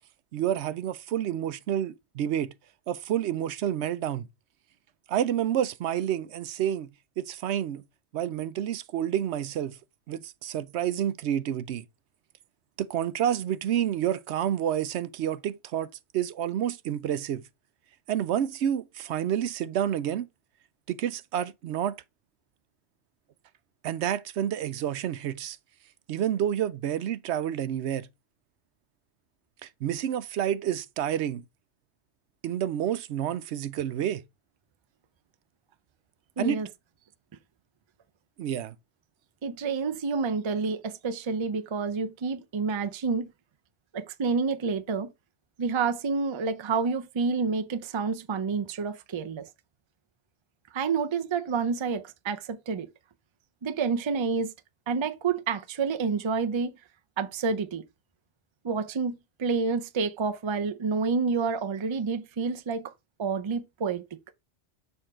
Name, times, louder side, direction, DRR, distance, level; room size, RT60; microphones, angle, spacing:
voice 1, 0.3-2.5 2.9-4.3 5.1-6.9 7.2-7.8 8.1-9.8 10.1-11.8 12.8-17.4 18.1-20.3 20.9-22.0 23.8-25.6 26.1-28.1 29.6-31.4 32.4-34.2 36.4-36.6 38.4-38.7, right 10 dB, 75° right, 0.8 m, -29 dB
voice 2, 36.4-36.7 39.4-43.3 43.9-45.1 45.6-49.5 50.7-52.9 53.6-54.5 54.9-56.7 57.2-57.8 58.6-62.9 63.2-64.2, right 5 dB, 35° right, 0.4 m, -29 dB
7.0 x 3.7 x 4.3 m
omnidirectional pair, 1.2 m